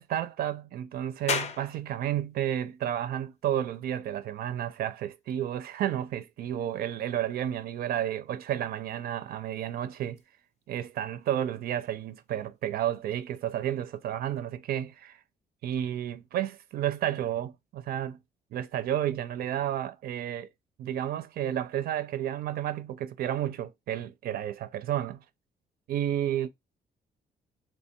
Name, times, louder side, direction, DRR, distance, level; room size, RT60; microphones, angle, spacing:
voice 1, 0.0-10.2 10.7-15.2 15.6-18.2 18.5-20.5 20.8-25.2 25.9-26.5, right 11 dB, 65° right, 0.4 m, -31 dB
sound 1, 1.3-14.4, left 6 dB, 40° left, 0.5 m, -44 dB
3.0 x 2.2 x 4.2 m
cardioid pair, 170°, 17 cm